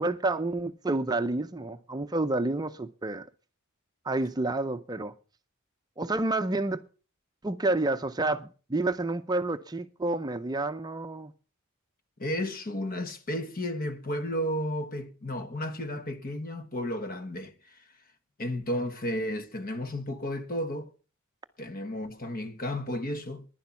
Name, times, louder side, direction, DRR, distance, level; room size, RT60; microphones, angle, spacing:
voice 1, 0.0-3.3 4.0-5.1 6.0-6.8 7.4-11.3, right 2 dB, 20° right, 0.5 m, -29 dB
voice 2, 12.2-17.8 18.4-20.9 21.6-23.5, left 1 dB, 45° left, 1.3 m, -33 dB
11.0 x 10.5 x 5.9 m
head